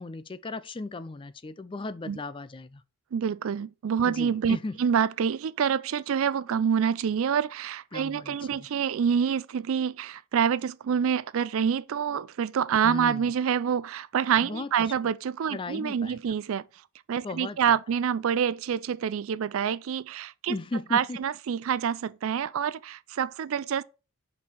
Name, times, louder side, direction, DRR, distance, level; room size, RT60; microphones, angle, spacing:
voice 1, 0.0-2.8 4.0-4.8 7.9-8.7 12.8-13.3 14.4-14.9 15.5-16.2 17.2-17.7 20.5-21.2, left 2 dB, 20° left, 0.4 m, -36 dB
voice 2, 3.1-16.6 17.1-20.5 20.9-23.8, right 7 dB, 65° right, 0.3 m, -27 dB
5.4 x 4.4 x 6.1 m
head